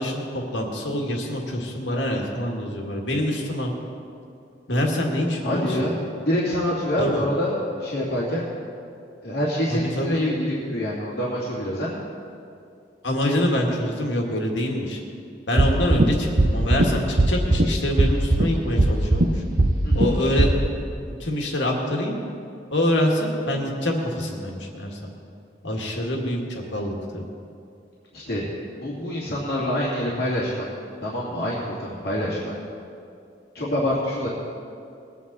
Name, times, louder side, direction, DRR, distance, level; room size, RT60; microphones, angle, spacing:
voice 1, 0.0-3.7 4.7-5.9 7.0-7.2 9.7-10.2 13.0-15.0 15.5-19.4 19.9-20.5 21.2-22.2 22.7-25.1 25.6-27.2, left 1 dB, 80° left, 0 dB, 2.0 m, -25 dB
voice 2, 5.4-6.0 6.2-8.4 9.2-11.9 19.8-20.2 28.1-28.4 28.7-30.7 31.0-32.5 33.5-34.3, left 1 dB, 60° left, -7 dB, 2.5 m, -26 dB
sound 1, 15.6-16.0 16.4-16.8 17.2-17.6 18.0-18.4 18.8-19.2 19.6-20.1 20.4-20.5, right 2 dB, 50° right, 0.9 m, -17 dB
21.5 x 9.4 x 4.2 m, 2.5 s
head